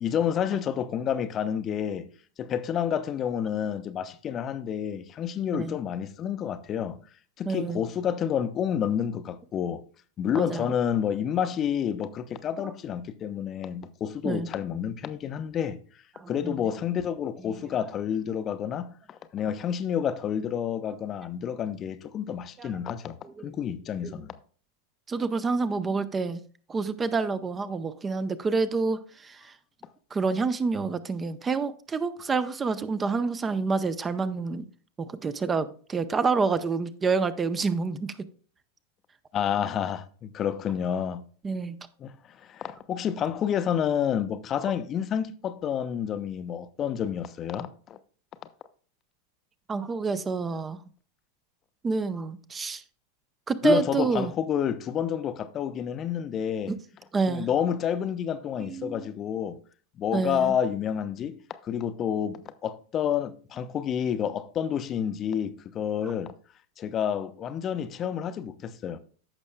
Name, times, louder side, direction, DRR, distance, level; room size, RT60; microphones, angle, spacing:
voice 1, 0.0-2.1 2.4-7.0 7.4-9.8 10.2-15.8 16.3-23.2 23.4-24.3 39.3-41.2 42.0-48.0 53.6-56.7 57.3-59.6 60.0-66.3 66.8-69.0, left 8 dB, 30° left, 0.6 m, -29 dB
voice 2, 7.5-7.8 10.4-10.7 14.2-14.5 16.2-16.5 17.5-17.7 22.6-22.7 23.4-23.5 24.0-24.2 25.1-26.4 26.7-29.5 30.1-34.6 35.0-38.1 41.4-41.8 49.7-50.8 51.8-52.8 53.5-54.3 56.7-56.8 57.1-57.5 58.7-59.1 60.1-60.5, right 4 dB, 15° right, 0.6 m, -28 dB
15.0 x 6.2 x 2.2 m
figure-of-eight pair, 90°, 0 cm